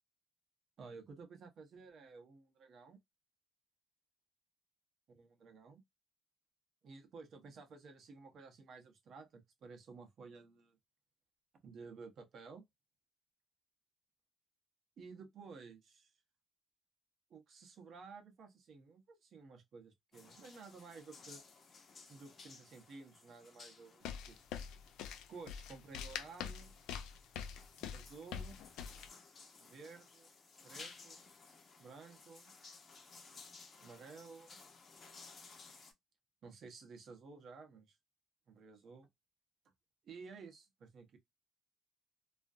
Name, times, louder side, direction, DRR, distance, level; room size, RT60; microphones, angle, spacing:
voice 1, 0.8-3.0 5.1-5.8 6.8-10.8 11.6-12.7 15.0-16.1 17.3-21.4 22.1-24.5 25.3-26.8 27.9-28.6 29.6-30.3 30.6-31.3 31.8-32.5 33.8-34.6 36.4-38.0 38.5-39.1 40.0-41.2, right 4 dB, 60° right, 0.8 m, -54 dB
sound 1, 20.1-35.9, left 4 dB, 40° left, 0.8 m, -58 dB
sound 2, 24.0-29.1, left 8 dB, 85° left, 0.4 m, -44 dB
2.4 x 2.1 x 2.5 m
supercardioid pair, 80°, 0 cm